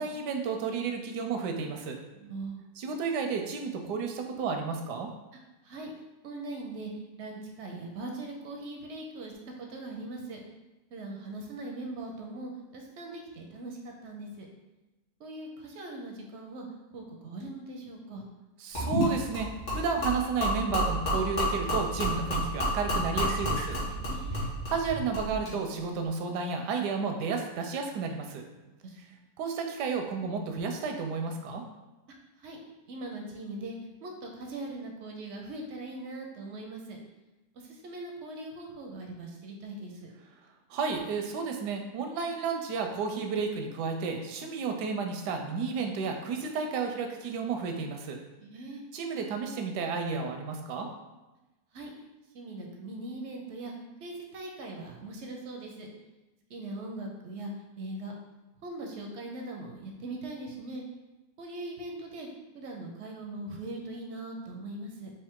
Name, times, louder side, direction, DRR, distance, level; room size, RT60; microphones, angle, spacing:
voice 1, 0.0-2.0 2.8-5.1 18.6-23.8 24.3-28.4 29.4-31.6 40.7-48.2 48.9-50.9, right 5 dB, 85° right, 4 dB, 1.2 m, -32 dB
voice 2, 2.1-2.6 5.6-5.9 6.2-6.9 7.2-10.4 10.9-14.5 15.2-16.7 16.9-18.2 23.9-24.4 28.6-29.3 32.4-32.6 32.9-37.0 37.5-40.1 48.4-48.9 51.7-51.9 52.3-53.7 54.0-55.9 56.5-57.5 57.8-58.1 58.6-60.8 61.4-62.3 62.5-65.1, right 2 dB, 65° right, 1 dB, 0.7 m, -40 dB
Gurgling / Liquid, 18.7-25.6, equal, 70° left, 2.2 m, -30 dB
4.7 x 2.7 x 3.6 m, 1.1 s
omnidirectional pair, 1.7 m